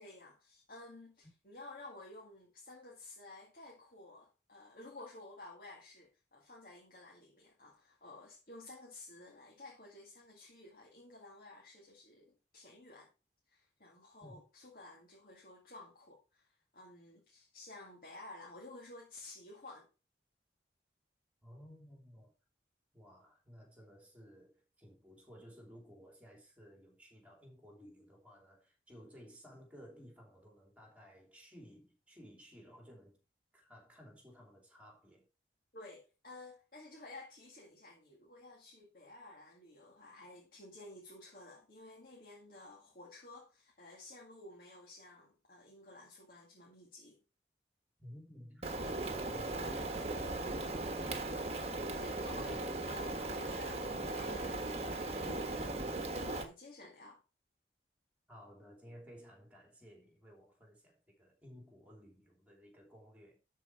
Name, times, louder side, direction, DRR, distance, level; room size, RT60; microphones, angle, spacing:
voice 1, 0.0-13.1 13.5-19.9 35.7-47.2 51.0-51.2 52.0-55.6 56.1-57.2, left 2 dB, 50° left, 2.2 m, -53 dB
voice 2, 21.4-22.3 22.9-33.2 33.5-35.3 48.0-50.3 50.9-51.3 52.3-52.6 58.3-63.4, equal, 10° right, 3.1 m, -56 dB
Rain, 48.6-56.4, right 2 dB, 35° right, 1.4 m, -38 dB
12.5 x 4.7 x 4.5 m
head